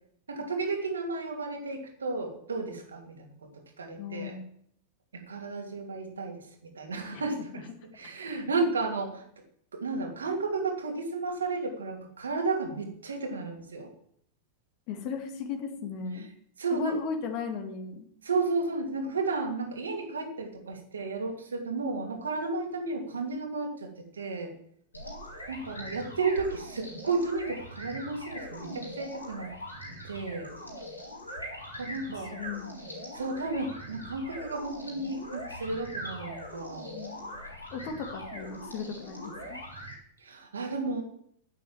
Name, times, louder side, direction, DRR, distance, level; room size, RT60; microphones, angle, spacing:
voice 1, 0.3-4.4 5.1-7.6 7.9-9.2 9.7-13.9 16.1-16.3 16.6-17.0 18.2-24.5 25.5-29.5 30.0-30.5 31.8-32.4 33.1-36.9 40.2-41.0, right 3 dB, 70° right, 2 dB, 2.8 m, -33 dB
voice 2, 4.0-4.5 7.1-7.2 14.9-16.3 16.7-18.1 32.3-32.7 36.9-37.3 37.7-39.6, left 5 dB, 45° left, 5 dB, 2.3 m, -36 dB
sound 1, 24.9-39.9, equal, 85° left, 4.0 m, -42 dB
9.7 x 9.0 x 7.5 m, 0.67 s
figure-of-eight pair, 90°, 0 cm